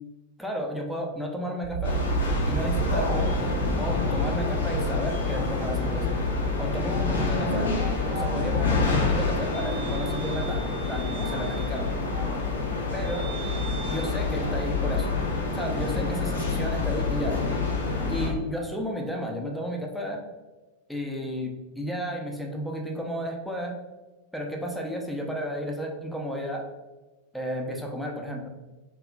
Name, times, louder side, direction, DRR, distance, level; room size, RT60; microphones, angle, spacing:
voice 1, 0.4-2.0 2.5-3.3 3.8-6.1 6.6-7.7 8.1-11.9 12.9-13.3 13.9-15.1 15.5-17.4 18.1-20.2 20.9-23.8 24.3-26.7 27.3-28.5, equal, ahead, 0 dB, 0.4 m, -32 dB
sound 1, 1.6-11.6 11.9-12.6, right 6 dB, 60° right, 0.6 m, -34 dB
sound 2, 1.8-18.3, left 3 dB, 70° left, 0.5 m, -27 dB
2.7 x 2.3 x 2.3 m, 1.2 s
figure-of-eight pair, 90°, 0 cm